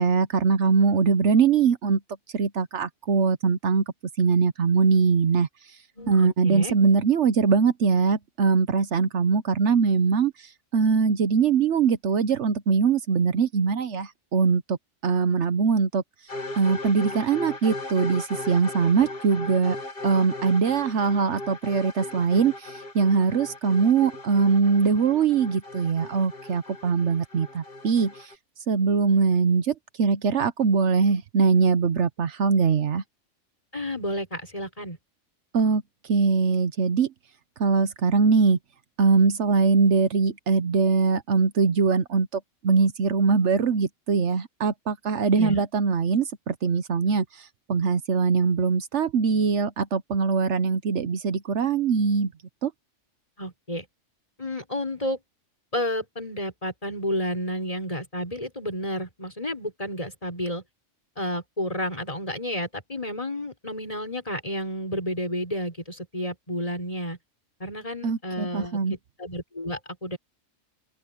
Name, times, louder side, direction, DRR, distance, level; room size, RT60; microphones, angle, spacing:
voice 1, 0.0-2.0 2.3-3.8 4.2-5.5 6.1-10.3 10.7-14.8 15.0-16.0 16.6-19.8 20.0-28.3 28.7-33.0 35.5-35.8 36.1-37.1 37.6-38.6 39.0-47.2 47.7-52.3 52.6-52.7 68.0-69.0, right 5 dB, 70° right, 1.2 m, -22 dB
voice 2, 6.0-6.7 19.0-19.1 33.7-35.0 45.4-45.6 53.4-53.8 54.4-55.2 55.7-60.6 61.2-67.2 67.6-68.8 69.2-70.2, equal, 30° left, 6.4 m, -31 dB
sound 1, 16.3-28.3, left 2 dB, 50° left, 2.7 m, -38 dB
open air
omnidirectional pair, 1.2 m